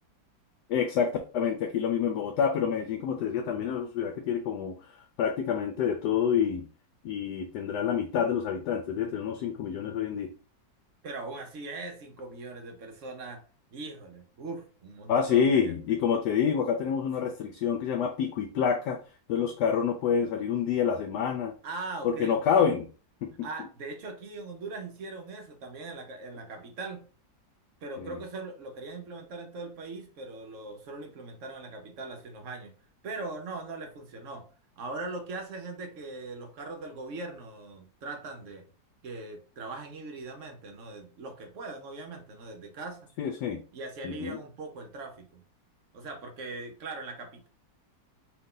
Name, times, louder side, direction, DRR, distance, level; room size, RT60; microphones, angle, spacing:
voice 1, 0.7-6.6 7.0-10.3 15.1-19.0 19.3-21.5 22.0-22.9 23.2-23.5 28.0-28.2 43.2-43.6 44.0-44.4, left 7 dB, 70° left, 5 dB, 1.1 m, -27 dB
voice 2, 11.0-13.4 13.7-15.8 21.6-22.4 23.4-27.1 27.8-32.7 33.0-34.5 34.8-38.7 39.0-43.1 43.7-45.4 45.9-47.5, right 3 dB, 50° right, 4 dB, 1.1 m, -40 dB
4.5 x 2.7 x 3.7 m, 0.37 s
omnidirectional pair, 2.0 m